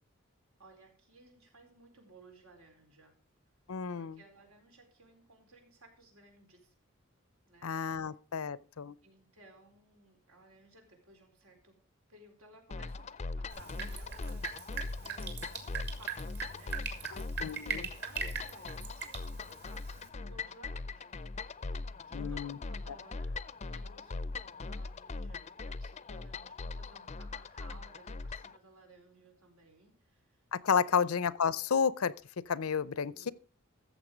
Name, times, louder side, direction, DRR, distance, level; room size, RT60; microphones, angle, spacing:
voice 1, 0.6-3.1 3.9-6.7 7.5-7.7 9.0-11.8 12.1-14.6 15.0-17.7 18.0-21.2 21.7-23.4 23.7-30.4 30.8-31.0 33.1-33.3, right 2 dB, 85° right, 4.3 m, -59 dB
voice 2, 3.7-4.2 7.6-8.9 17.4-17.9 22.1-22.6 30.5-32.1 32.5-33.3, left 6 dB, 90° left, 0.6 m, -31 dB
sound 1, 12.7-28.6, left 3 dB, 30° left, 0.4 m, -41 dB
Drip, 13.5-20.1, right 6 dB, 50° right, 2.4 m, -41 dB
14.5 x 7.2 x 5.1 m
head